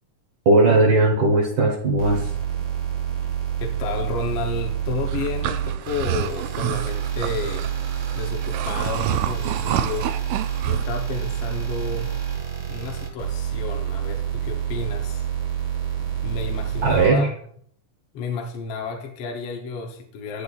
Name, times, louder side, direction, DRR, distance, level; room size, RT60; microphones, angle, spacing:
voice 1, 0.4-2.3 16.8-17.3, right 2 dB, 70° right, 0 dB, 1.2 m, -18 dB
sound 1, 2.0-17.1, right 9 dB, 40° right, 1.5 m, -28 dB
voice 2, 3.6-7.7 8.1-10.1 10.7-12.2 12.7-15.2 16.2-17.3 18.1-20.4, left 5 dB, 70° left, 2 dB, 1.5 m, -31 dB
sound 2, 5.1-10.8, right 10 dB, 85° right, 1.6 m, -29 dB
10.5 x 8.7 x 2.4 m, 0.62 s
omnidirectional pair, 3.7 m